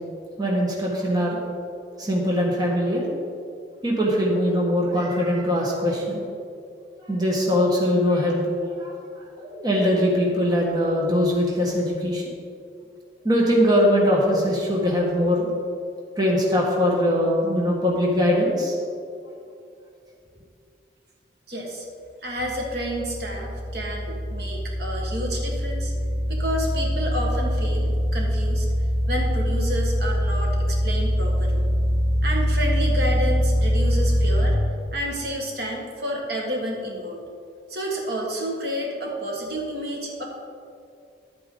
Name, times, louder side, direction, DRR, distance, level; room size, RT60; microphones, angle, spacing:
voice 1, 0.4-1.4 2.0-3.0 3.8-6.2 7.1-8.4 8.8-8.9 9.4-12.2 13.2-15.5 16.2-18.7, equal, 20° right, -3 dB, 1.5 m, -21 dB
voice 2, 21.5-21.9 22.2-25.9 26.3-28.7 29.1-31.6 32.2-34.6 34.9-37.2 37.7-40.3, equal, 60° right, -1 dB, 1.6 m, -30 dB
sound 1, 22.4-34.5, equal, 5° right, 2.8 m, -23 dB
11.5 x 8.7 x 3.9 m, 2.4 s
head